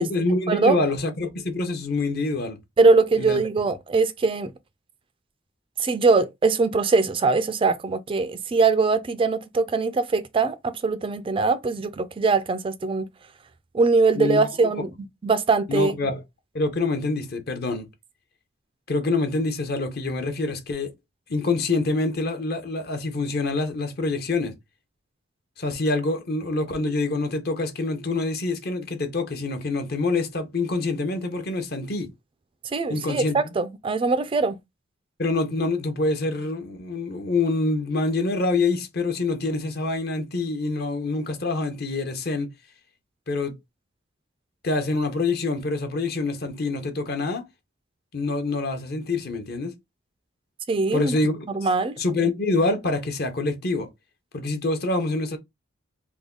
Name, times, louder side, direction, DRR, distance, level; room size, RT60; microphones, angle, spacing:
voice 1, 0.0-2.6 3.2-3.4 14.2-14.5 15.7-16.2 16.5-17.9 18.9-20.9 21.3-24.5 25.6-32.1 32.9-33.4 35.2-42.5 43.3-43.5 44.6-47.4 48.1-49.7 50.9-51.4 52.0-53.9 54.3-55.4, left 3 dB, 55° left, 0.8 m, -26 dB
voice 2, 2.8-4.5 5.8-13.1 13.7-14.9 15.2-16.0 32.7-34.6 50.7-51.2 51.5-51.9, right 3 dB, 30° right, 0.3 m, -22 dB
3.5 x 2.2 x 3.6 m
head